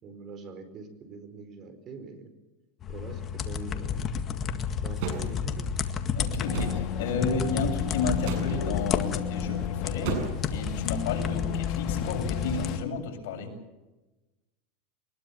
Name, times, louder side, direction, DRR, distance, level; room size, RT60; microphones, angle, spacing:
voice 1, 0.0-2.3 2.9-4.0 4.8-5.7 11.2-11.5, right 4 dB, 35° right, 11 dB, 4.6 m, -43 dB
sound 1, 2.8-12.8, left 7 dB, 30° left, 1.9 m, -32 dB
sound 2, 5.0-5.3 6.5-6.8 8.2-8.5 10.0-10.5, right 6 dB, 60° right, 7.4 m, -32 dB
voice 2, 6.1-10.2 10.5-13.6, left 4 dB, 70° left, 1 dB, 7.8 m, -32 dB
sound 3, 6.5-12.8, left 9 dB, 50° left, 2.2 m, -33 dB
23.0 x 21.5 x 7.1 m, 1.1 s
supercardioid pair, 140°, 0 cm